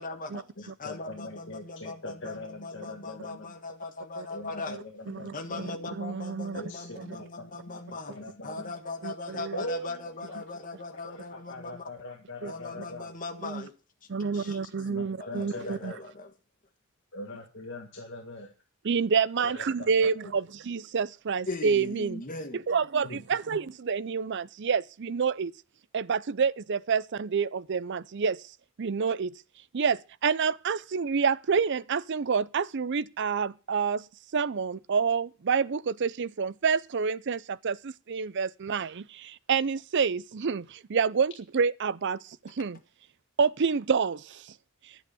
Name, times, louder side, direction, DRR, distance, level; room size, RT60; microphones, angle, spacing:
voice 1, 0.0-4.8 5.3-11.9 12.4-13.7 14.3-14.9 15.2-16.3 21.4-22.6 42.6-42.7, left 3 dB, 40° left, 1.5 m, -39 dB
voice 2, 0.6-3.5 4.3-5.7 6.5-7.5 7.7-8.7 9.5-10.4 11.1-11.2 11.5-13.1 14.9-16.0 17.1-18.5 19.4-20.4 23.0-23.2, left 1 dB, 55° left, 1.9 m, -41 dB
voice 3, 5.1-5.7 6.0-6.6 9.0-9.5 12.4-12.5 13.4-13.6 14.1-15.9 18.8-22.2 22.5-25.5 25.9-28.4 28.8-29.3 29.7-34.1 34.3-40.6 40.9-42.8 43.4-44.5, right 5 dB, 55° right, 0.5 m, -28 dB
11.0 x 8.5 x 6.9 m
head